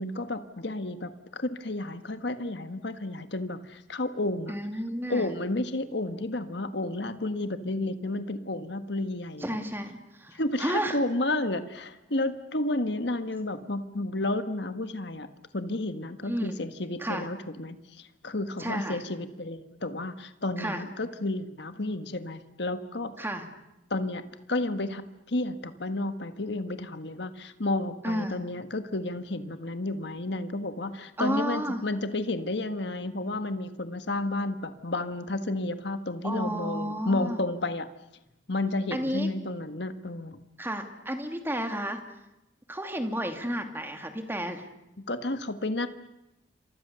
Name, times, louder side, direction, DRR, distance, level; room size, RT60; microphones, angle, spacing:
voice 1, 0.0-4.6 5.1-9.6 10.3-15.3 15.5-23.1 23.9-25.0 25.3-37.9 38.5-40.4 45.1-45.9, left 2 dB, 60° left, 10 dB, 1.5 m, -31 dB
voice 2, 4.5-5.3 9.4-11.0 16.2-16.6 17.0-17.2 18.6-19.0 20.6-20.8 23.2-23.5 28.0-28.4 31.2-31.8 36.2-37.4 38.9-39.3 40.6-42.0 42.7-44.6, equal, 10° right, 5 dB, 2.5 m, -32 dB
28.5 x 25.5 x 6.9 m, 0.93 s
head